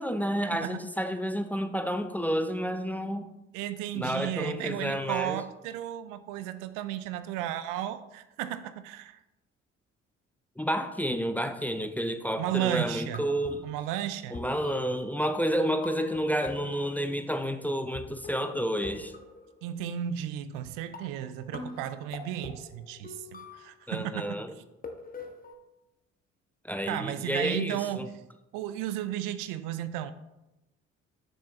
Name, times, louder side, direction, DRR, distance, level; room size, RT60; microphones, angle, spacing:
voice 1, 0.0-3.3 3.9-5.4 10.6-13.6 14.3-19.1 23.9-24.5 26.6-28.1, equal, 5° left, 7 dB, 0.6 m, -30 dB
voice 2, 0.5-0.9 3.5-9.2 12.4-13.2 13.6-14.4 19.6-24.2 24.6-24.7 26.9-28.1 28.5-30.1, right 12 dB, 60° right, 12 dB, 0.5 m, -34 dB
sound 1, 12.8-13.7 14.3-17.2 17.9-18.0 18.2-19.9 20.6-20.7 20.9-23.8 24.2-25.5, left 3 dB, 25° left, 1.2 m, -44 dB
7.1 x 6.8 x 3.2 m, 0.94 s
figure-of-eight pair, 45°, 36 cm